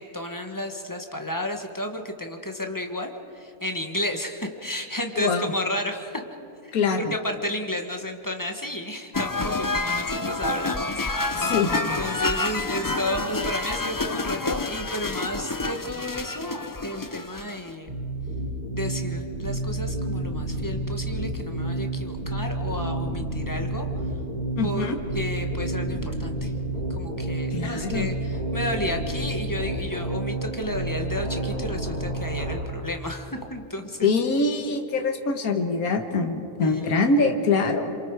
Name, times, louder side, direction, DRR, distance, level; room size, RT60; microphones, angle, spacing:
voice 1, 0.0-6.2 6.6-10.9 11.2-11.4 12.0-17.9 18.7-23.9 24.6-26.5 26.9-34.1 36.6-37.1, left 1 dB, 15° left, 4 dB, 1.5 m, -32 dB
voice 2, 5.2-5.5 6.7-7.1 11.4-11.7 24.6-25.0 27.5-28.1 34.0-38.0, left 4 dB, 75° left, 4 dB, 1.9 m, -24 dB
sound 1, 9.1-17.7, left 3 dB, 35° left, 0.3 m, -28 dB
sound 2, 17.9-32.5, right 1 dB, 40° right, 7.4 m, -30 dB
28.0 x 26.5 x 4.8 m, 2.6 s
omnidirectional pair, 1.5 m